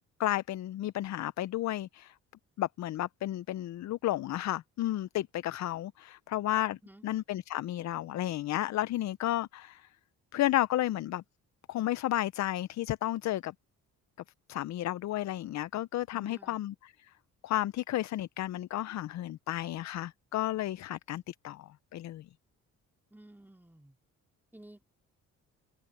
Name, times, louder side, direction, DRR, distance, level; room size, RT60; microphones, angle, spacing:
voice 1, 0.0-2.1 2.6-6.8 7.0-9.9 10.3-11.2 11.7-13.5 14.5-16.7 17.4-22.3, left 14 dB, 65° left, 0.6 m, -32 dB
voice 2, 16.1-16.6 23.1-24.0 24.5-24.8, right 1 dB, 5° right, 3.8 m, -54 dB
cardioid pair, 90°, 30 cm